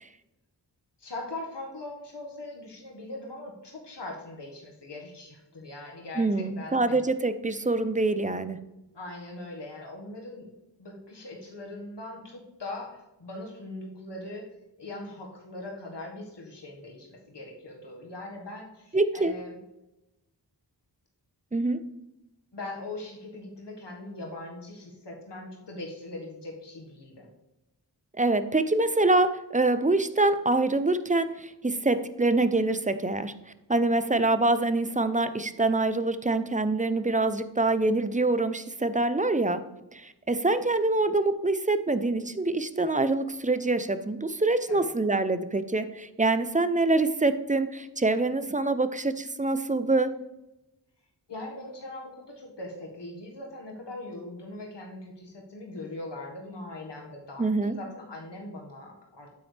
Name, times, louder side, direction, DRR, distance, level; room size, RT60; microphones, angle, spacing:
voice 1, 1.0-7.0 8.9-10.5 10.8-14.5 14.8-19.6 22.5-27.3 44.7-44.9 51.3-59.3, left 2 dB, 70° left, -1 dB, 1.6 m, -41 dB
voice 2, 6.2-8.6 18.9-19.3 21.5-21.8 28.2-33.3 33.7-39.6 39.9-50.1 57.4-57.8, right 2 dB, 20° right, 11 dB, 0.6 m, -25 dB
9.0 x 8.5 x 3.3 m, 0.95 s
wide cardioid pair, 55°, 43 cm